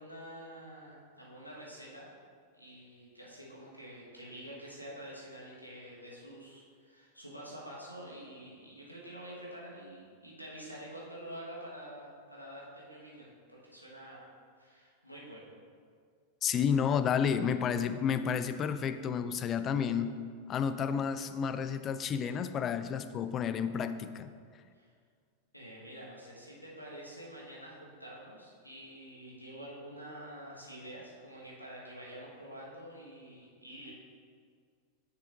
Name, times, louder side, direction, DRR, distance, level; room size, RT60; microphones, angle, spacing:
voice 1, 0.0-2.1 2.5-14.3 14.6-15.5 24.7-24.9 25.5-33.9, equal, 90° left, -4 dB, 1.4 m, -47 dB
voice 2, 16.4-20.2 20.5-24.3, left 7 dB, 30° left, 11 dB, 0.4 m, -31 dB
9.8 x 6.4 x 2.6 m, 2.1 s
figure-of-eight pair, 90°, 0 cm